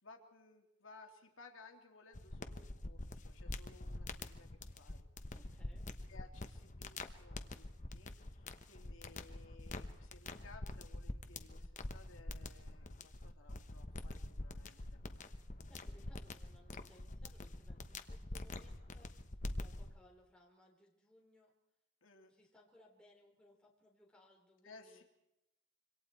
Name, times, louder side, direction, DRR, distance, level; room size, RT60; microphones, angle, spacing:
voice 1, 0.0-5.1 6.1-15.0 22.0-22.3 24.6-25.0, left 3 dB, 75° left, 2 dB, 2.8 m, -60 dB
sound 1, 2.1-19.9, left 2 dB, 40° left, 1.1 m, -46 dB
voice 2, 5.3-5.9 15.7-21.5 22.3-25.0, left 1 dB, 5° left, -2 dB, 3.7 m, -66 dB
26.5 x 25.0 x 4.5 m, 0.86 s
head